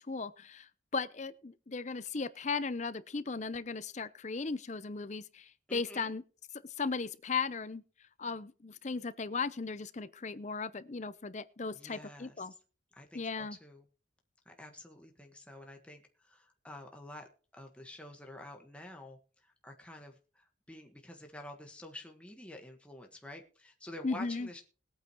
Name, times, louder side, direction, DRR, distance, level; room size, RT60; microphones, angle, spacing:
voice 1, 0.0-6.2 6.8-7.8 8.2-12.5 13.1-13.6 24.0-24.5, left 4 dB, 40° left, 0.6 m, -37 dB
voice 2, 5.7-6.1 11.7-12.4 12.9-13.8 14.4-17.3 17.5-24.6, left 1 dB, 5° left, 1.4 m, -49 dB
20.5 x 8.9 x 3.0 m
head